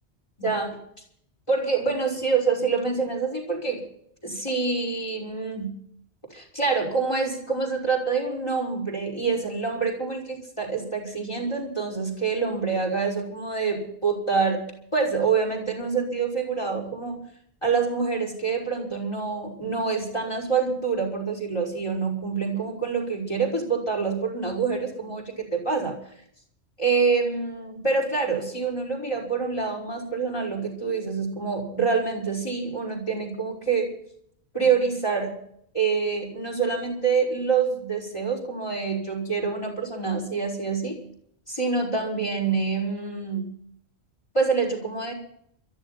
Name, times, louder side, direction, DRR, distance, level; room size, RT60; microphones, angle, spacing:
voice 1, 0.4-0.8 1.5-3.8 4.2-5.7 6.3-14.6 14.9-17.3 17.6-25.9 26.8-33.9 34.5-35.3 35.7-41.0 41.5-43.5 44.3-45.1, right 5 dB, 25° left, 2 dB, 5.7 m, -26 dB
22.5 x 14.5 x 4.3 m, 0.68 s
omnidirectional pair, 1.1 m